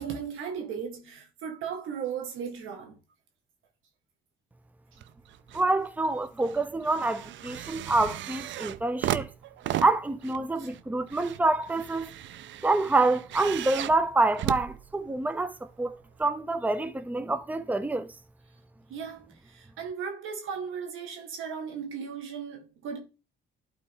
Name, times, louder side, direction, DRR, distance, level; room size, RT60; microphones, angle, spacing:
voice 1, 0.0-3.0 10.6-10.7 18.9-23.0, right 7 dB, 90° right, 2.0 m, -36 dB
sound 1, 5.0-5.7 6.0-15.4 16.2-16.3, right 13 dB, 70° right, 0.5 m, -36 dB
voice 2, 5.5-9.3 9.8-12.1 12.6-18.1, right 2 dB, 10° right, 0.6 m, -27 dB
11.5 x 4.5 x 3.7 m
cardioid pair, 90°, 20 cm